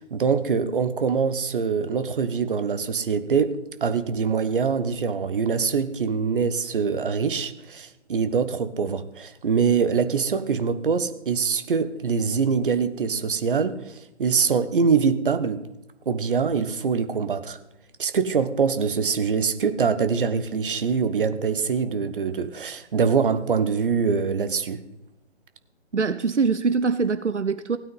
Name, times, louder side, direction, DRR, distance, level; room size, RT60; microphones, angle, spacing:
voice 1, 0.0-15.6 16.1-17.6 18.0-24.8, right 5 dB, 50° right, 1.2 m, -24 dB
voice 2, 25.9-27.8, right 4 dB, 85° right, 0.8 m, -23 dB
16.5 x 9.3 x 5.6 m
figure-of-eight pair, 135°, 34 cm